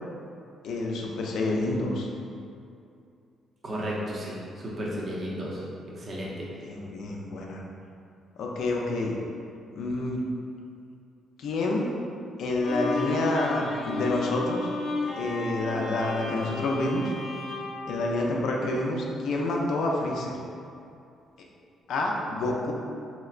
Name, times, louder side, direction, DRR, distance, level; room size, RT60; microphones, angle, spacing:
voice 1, 0.6-2.1 6.6-7.6 8.4-9.2 9.7-10.2 11.4-11.9 12.4-14.6 15.1-17.1 17.9-20.3 21.9-22.7, left 2 dB, 75° left, -1 dB, 0.4 m, -28 dB
voice 2, 3.6-5.6 6.0-6.3, equal, 40° right, -5 dB, 0.7 m, -33 dB
Bowed string instrument, 12.6-18.9, left 3 dB, 50° left, 0.8 m, -33 dB
3.2 x 2.8 x 2.4 m, 2.5 s
cardioid pair, 90°, 0 cm